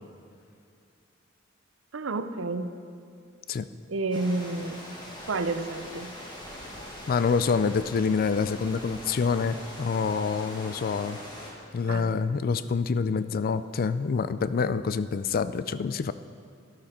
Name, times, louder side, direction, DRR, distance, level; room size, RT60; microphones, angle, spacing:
voice 1, 1.9-2.7 3.9-4.8 5.3-6.2 11.9-12.1, right 3 dB, 80° right, 10 dB, 0.7 m, -30 dB
sound 1, 4.1-11.5, left 1 dB, 25° left, 1.9 m, -42 dB
voice 2, 7.1-11.2 11.7-16.1, left 5 dB, 50° left, 14 dB, 0.4 m, -26 dB
12.5 x 11.0 x 4.3 m, 2.5 s
head